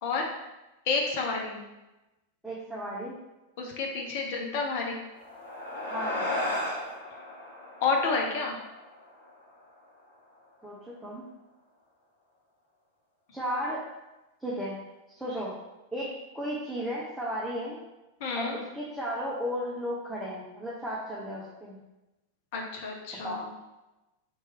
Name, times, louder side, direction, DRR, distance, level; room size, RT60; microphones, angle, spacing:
voice 1, 0.0-0.4 0.9-1.6 3.6-5.0 7.8-8.6 18.2-18.6 22.5-23.5, left 4 dB, 50° left, 1 dB, 0.9 m, -29 dB
voice 2, 2.4-3.2 5.9-6.3 10.6-11.3 13.3-13.8 14.4-14.8 15.2-15.5 15.9-17.8 18.4-21.8 23.2-23.4, equal, ahead, -8 dB, 0.9 m, -34 dB
sound 1, 5.0-9.7, left 1 dB, 70° left, 1.1 m, -35 dB
4.4 x 3.1 x 3.3 m, 1.0 s
figure-of-eight pair, 90°, 0 cm